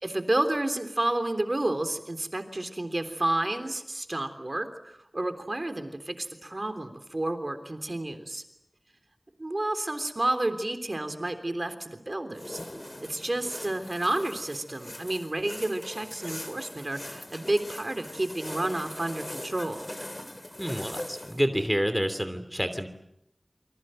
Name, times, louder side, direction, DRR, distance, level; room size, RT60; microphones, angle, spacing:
voice 1, 0.0-8.4 9.4-12.6 13.0-19.9, right 1 dB, 50° right, 7 dB, 3.4 m, -30 dB
sound 1, 12.3-21.4, left 1 dB, 30° left, 3.3 m, -41 dB
voice 2, 20.6-22.9, equal, 5° right, 9 dB, 3.0 m, -28 dB
28.5 x 25.0 x 7.8 m, 0.81 s
wide cardioid pair, 45°, 0 cm